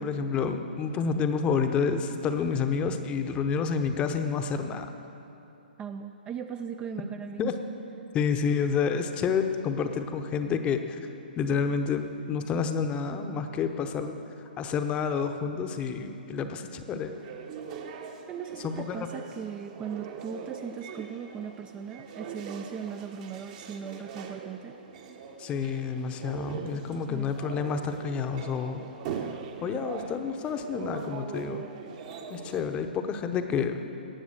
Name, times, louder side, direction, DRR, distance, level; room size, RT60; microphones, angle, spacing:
voice 1, 0.0-4.9 7.4-7.5 8.1-11.0 11.4-14.2 14.6-17.1 18.6-19.1 25.4-29.3 29.6-31.7 32.3-33.8, left 6 dB, 20° left, 7 dB, 0.8 m, -29 dB
voice 2, 5.8-7.5 18.3-24.8 27.1-27.4, right 7 dB, 20° right, 7 dB, 0.4 m, -38 dB
sound 1, 17.1-32.6, right 6 dB, 40° right, 1.1 m, -41 dB
18.0 x 6.8 x 6.6 m, 2.9 s
hypercardioid pair, 140°, 5 cm